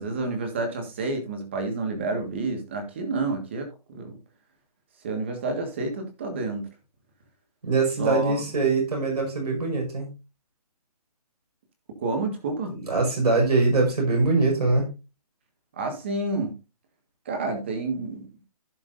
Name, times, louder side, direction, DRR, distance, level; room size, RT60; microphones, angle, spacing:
voice 1, 0.0-4.2 5.0-6.7 8.0-8.4 12.0-12.7 15.8-16.5 17.2-18.3, right 3 dB, 20° right, 4 dB, 1.6 m, -29 dB
voice 2, 7.6-10.1 12.7-14.9, right 3 dB, 85° right, 0 dB, 5.1 m, -23 dB
15.5 x 5.8 x 2.6 m, 0.27 s
hypercardioid pair, 180°, 20 cm